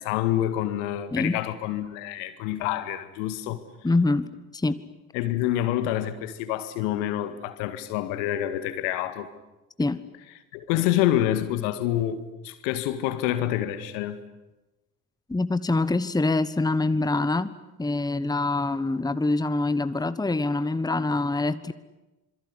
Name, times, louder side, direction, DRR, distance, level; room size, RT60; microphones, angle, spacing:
voice 1, 0.0-3.6 5.1-9.3 10.5-14.2, left 12 dB, 65° left, 2.1 m, -27 dB
voice 2, 1.1-1.4 3.8-4.3 4.5-4.8 9.8-10.0 15.3-17.5 17.8-21.7, left 2 dB, 10° left, 1.2 m, -25 dB
27.0 x 22.5 x 9.8 m
figure-of-eight pair, 50°, 43 cm